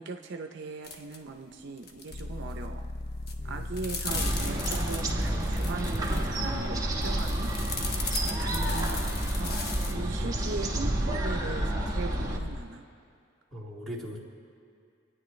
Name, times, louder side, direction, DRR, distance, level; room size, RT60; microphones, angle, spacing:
voice 1, 0.0-2.8 3.4-9.6 9.9-12.8, right 3 dB, 65° right, 4 dB, 0.6 m, -39 dB
sound 1, 0.8-1.2 1.4-2.2 2.5-2.9 3.3-6.5 6.9-9.9, left 4 dB, 55° left, 1.0 m, -38 dB
sound 2, 2.1-12.6, left 1 dB, 75° left, 0.5 m, -37 dB
voice 2, 3.4-3.8 13.5-14.2, equal, ahead, -8 dB, 2.1 m, -40 dB
sound 3, 4.1-12.4, right 1 dB, 20° right, 1.2 m, -30 dB
26.0 x 9.6 x 3.2 m, 2.3 s
head